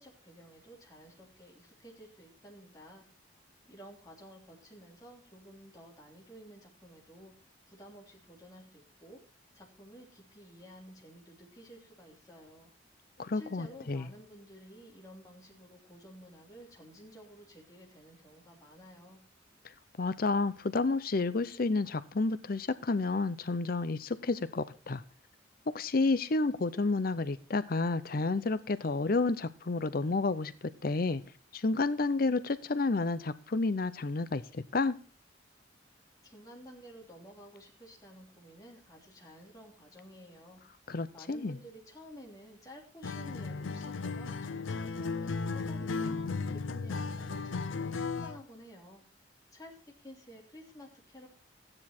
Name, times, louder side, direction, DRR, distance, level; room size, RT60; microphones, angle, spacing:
voice 1, 0.0-3.0 3.7-7.3 7.7-9.2 9.5-12.7 13.3-19.2 36.2-40.6 41.1-49.0 49.5-51.3, equal, 20° left, -2 dB, 3.1 m, -52 dB
voice 2, 13.2-14.1 20.0-25.0 25.7-31.2 31.5-35.0 40.9-41.6, left 3 dB, 50° left, 14 dB, 0.6 m, -30 dB
Acoustic guitar, 43.0-48.4, left 4 dB, 90° left, 0.6 m, -35 dB
13.5 x 9.8 x 4.3 m, 0.37 s
head